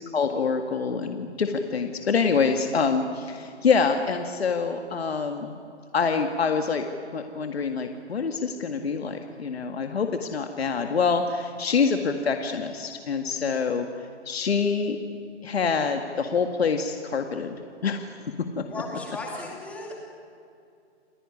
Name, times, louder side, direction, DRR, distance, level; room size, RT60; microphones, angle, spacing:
voice 1, 0.0-5.6 5.9-6.8 7.1-13.9 14.3-15.0 15.4-18.1 18.6-18.7, left 5 dB, 65° left, 5 dB, 2.0 m, -26 dB
voice 2, 18.7-19.9, left 2 dB, 5° left, -1 dB, 2.6 m, -36 dB
28.5 x 17.5 x 9.9 m, 2.4 s
hypercardioid pair, 165°, 34 cm